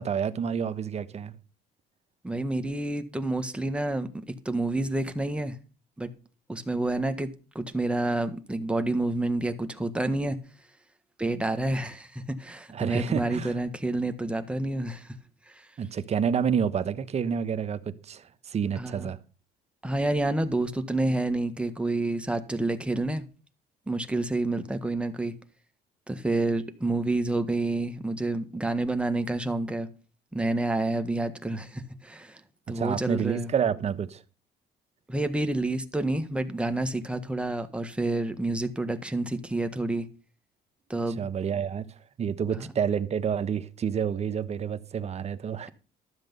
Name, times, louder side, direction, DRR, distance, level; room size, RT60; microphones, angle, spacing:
voice 1, 0.0-1.3 11.4-11.5 12.7-13.5 15.8-19.2 32.7-34.2 41.2-41.8 42.2-45.7, right 7 dB, 40° right, 1.1 m, -29 dB
voice 2, 2.2-5.6 6.0-6.1 6.5-7.3 7.5-10.4 11.2-15.1 15.5-15.7 18.7-19.1 19.8-23.2 23.9-25.3 26.1-29.9 30.3-32.4 32.7-33.5 35.1-40.1 40.9-41.2 42.6-42.7, right 2 dB, 5° right, 1.5 m, -29 dB
13.0 x 7.4 x 5.4 m
cardioid pair, 110°, 17 cm